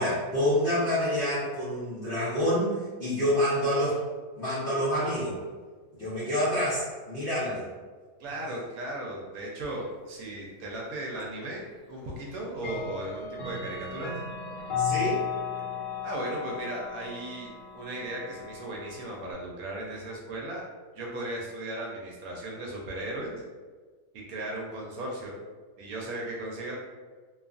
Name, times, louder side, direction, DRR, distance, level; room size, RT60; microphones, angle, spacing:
voice 1, 0.0-4.0 4.3-5.4 5.9-7.6 14.8-15.2, equal, 55° left, -11 dB, 0.6 m, -27 dB
voice 2, 8.2-14.1 16.0-20.6 21.0-23.4 24.1-25.4 25.8-26.8, right 1 dB, 70° right, -2 dB, 1.0 m, -36 dB
Clock, 11.2-11.3 12.6-19.3, left 7 dB, 80° left, 1.3 m, -35 dB
2.8 x 2.3 x 2.4 m, 1.4 s
omnidirectional pair, 1.7 m